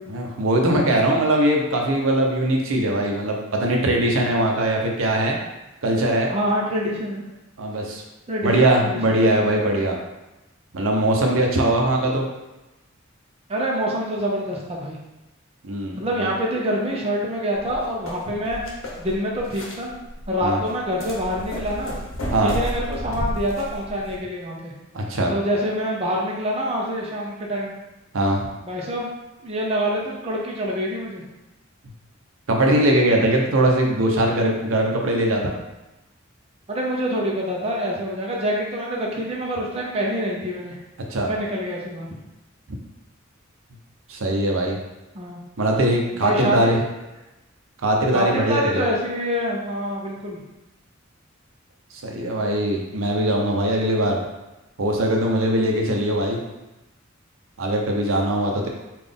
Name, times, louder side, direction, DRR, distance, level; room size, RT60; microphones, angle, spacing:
voice 1, 0.1-5.4 5.8-6.3 7.6-8.0 8.4-10.0 10.7-12.3 15.6-16.3 20.4-20.6 22.3-22.6 24.9-25.3 28.1-28.4 32.5-35.5 41.1-41.3 44.1-44.8 45.6-46.8 47.8-48.8 52.0-54.2 54.8-56.4 57.6-58.7, right 1 dB, 85° right, 0 dB, 0.7 m, -21 dB
voice 2, 6.3-7.2 8.3-9.0 13.5-15.0 16.0-18.6 19.0-19.9 20.3-21.9 22.4-24.7 25.3-27.7 28.6-29.1 29.4-31.2 36.7-40.7 41.3-42.1 45.1-45.4 46.1-46.7 48.1-50.4, equal, 30° right, -3 dB, 0.7 m, -26 dB
sound 1, 17.5-24.2, equal, 80° left, 0.8 m, -33 dB
3.9 x 2.4 x 3.4 m, 1.0 s
head